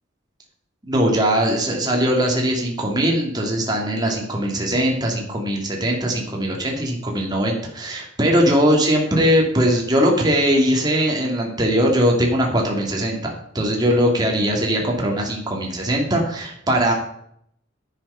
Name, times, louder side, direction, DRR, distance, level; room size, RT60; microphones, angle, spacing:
voice 1, 0.9-16.9, equal, 20° right, -1 dB, 2.5 m, -20 dB
10.5 x 8.3 x 5.7 m, 0.69 s
head